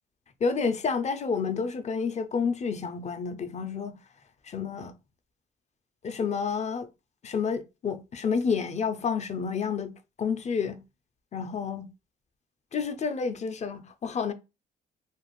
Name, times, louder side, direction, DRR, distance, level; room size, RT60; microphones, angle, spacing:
voice 1, 0.4-3.9 4.4-5.0 6.0-6.9 7.2-9.9 10.2-10.8 11.3-11.9 12.7-14.3, left 5 dB, 35° left, 0.5 m, -29 dB
2.5 x 2.4 x 3.0 m
cardioid pair, 90°, 20 cm